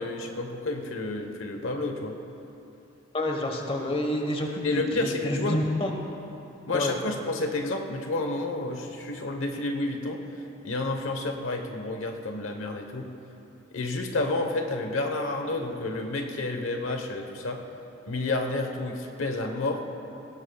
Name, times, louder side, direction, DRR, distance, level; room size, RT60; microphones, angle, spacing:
voice 1, 0.0-2.2 4.6-5.6 6.7-10.2 10.6-13.1 13.7-17.6 18.1-19.8, left 2 dB, 85° left, 4 dB, 1.0 m, -30 dB
voice 2, 3.1-5.9 6.7-6.9, left 1 dB, 30° left, 2 dB, 1.2 m, -28 dB
19.5 x 17.0 x 2.3 m, 2.9 s
head